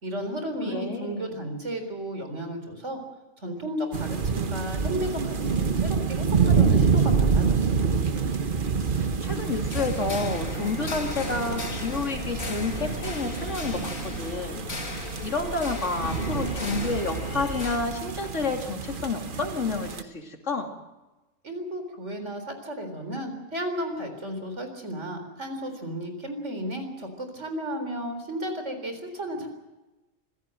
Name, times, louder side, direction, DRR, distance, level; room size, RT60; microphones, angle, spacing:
voice 1, 0.0-3.0 3.4-7.8 21.4-29.5, equal, 60° right, 6 dB, 4.3 m, -34 dB
voice 2, 0.7-1.3 8.9-20.7, left 3 dB, 65° left, 3 dB, 3.1 m, -30 dB
sound 1, 3.9-20.0, right 5 dB, 40° right, 1.2 m, -27 dB
sound 2, 9.2-17.8, left 3 dB, 90° left, 2.9 m, -36 dB
25.0 x 16.0 x 7.7 m, 1.1 s
omnidirectional pair, 1.4 m